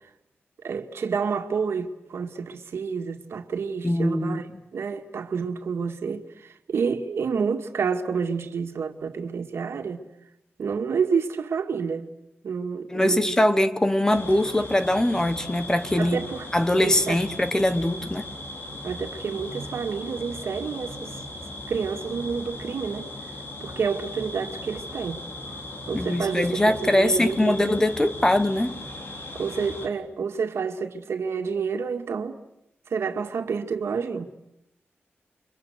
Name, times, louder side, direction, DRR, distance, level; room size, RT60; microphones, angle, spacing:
voice 1, 0.6-4.5 4.7-10.0 10.6-12.1 12.4-13.4 16.0-16.5 16.8-17.2 18.8-21.2 21.7-23.1 23.6-25.2 25.9-26.6 26.9-27.8 29.4-32.4 32.9-34.3, right 5 dB, 80° right, 2.1 m, -29 dB
voice 2, 3.8-4.4 12.9-16.2 16.5-18.3 25.9-28.8, left 1 dB, 15° left, 1.1 m, -22 dB
sound 1, 14.1-29.9, left 1 dB, 60° left, 3.4 m, -38 dB
29.5 x 24.5 x 8.1 m
wide cardioid pair, 140°, 4 cm